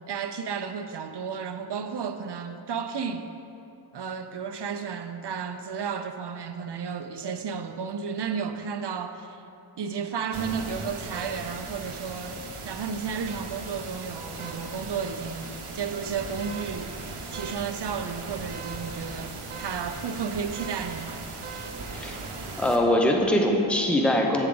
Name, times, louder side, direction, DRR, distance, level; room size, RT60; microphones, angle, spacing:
voice 1, 0.1-3.3 3.9-9.4 9.8-21.2, right 6 dB, 55° right, 8 dB, 0.6 m, -33 dB
sound 1, 10.3-22.8, right 3 dB, 85° right, 0.9 m, -38 dB
voice 2, 22.5-24.5, left 1 dB, ahead, 1 dB, 0.7 m, -22 dB
8.1 x 6.9 x 3.8 m, 2.7 s
wide cardioid pair, 70°, 49 cm